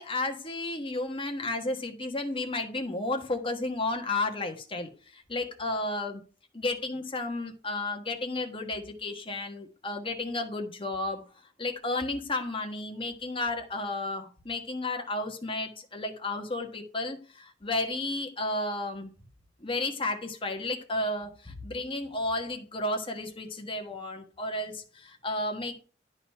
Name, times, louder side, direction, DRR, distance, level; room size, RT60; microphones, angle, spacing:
voice 1, 0.0-6.2 6.5-11.2 11.6-19.1 19.6-25.8, left 2 dB, 30° left, 1.3 m, -32 dB
11.5 x 4.1 x 5.6 m
head